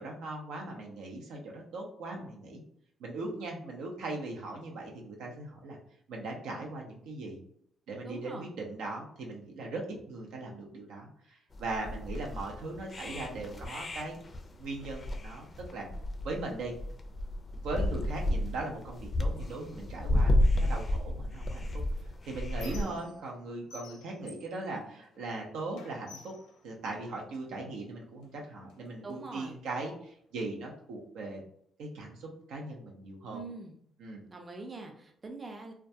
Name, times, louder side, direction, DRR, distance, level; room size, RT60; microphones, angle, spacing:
voice 1, 0.0-2.6 3.0-5.8 6.1-7.4 7.9-14.2 14.6-15.9 16.2-16.7 17.6-21.8 22.3-26.3 26.6-31.4 31.8-33.4 34.0-34.2, right 2 dB, 85° right, 0 dB, 0.6 m, -39 dB
voice 2, 8.0-8.5 24.7-24.8 29.0-29.6 33.3-33.8 34.3-35.7, right 3 dB, 30° right, 3 dB, 0.4 m, -43 dB
sound 1, 11.5-22.8, left 1 dB, 35° left, 0.4 m, -31 dB
Squeak, 21.6-23.4 23.7-25.4 25.7-27.5 28.2-28.4 28.7-29.7, left 3 dB, 90° left, 0.5 m, -52 dB
2.2 x 2.1 x 2.7 m, 0.67 s
cardioid pair, 90°, 0 cm